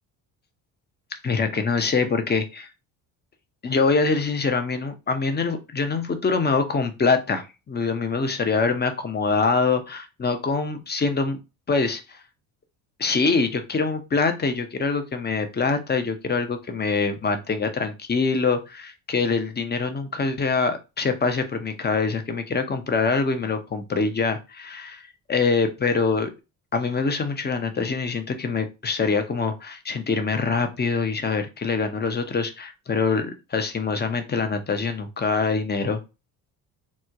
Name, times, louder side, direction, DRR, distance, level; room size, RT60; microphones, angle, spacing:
voice 1, 1.2-2.7 3.6-11.4 11.7-12.2 13.0-25.0 25.3-26.3 26.7-36.0, left 4 dB, 20° left, 7 dB, 0.6 m, -24 dB
3.0 x 2.1 x 3.6 m, 0.28 s
hypercardioid pair, 65°, 47 cm